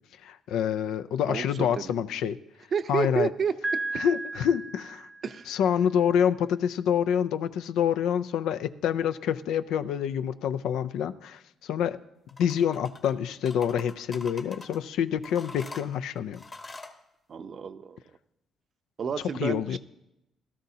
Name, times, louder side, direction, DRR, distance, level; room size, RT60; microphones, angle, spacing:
voice 1, 0.2-2.4 2.9-3.3 4.0-5.1 5.5-12.0 12.4-16.4 19.4-19.8, left 8 dB, 85° left, 12 dB, 0.4 m, -27 dB
voice 2, 1.3-2.0 2.7-3.5 5.2-5.5 17.3-18.0 19.0-19.8, right 6 dB, 50° right, 11 dB, 0.6 m, -30 dB
Piano, 3.6-5.6, right 2 dB, 15° right, 0.7 m, -34 dB
sound 1, 12.3-13.1 13.5-14.8 15.2-17.0, left 3 dB, 30° left, 1.3 m, -44 dB
17.0 x 13.0 x 2.8 m, 0.85 s
cardioid pair, 90°, 0 cm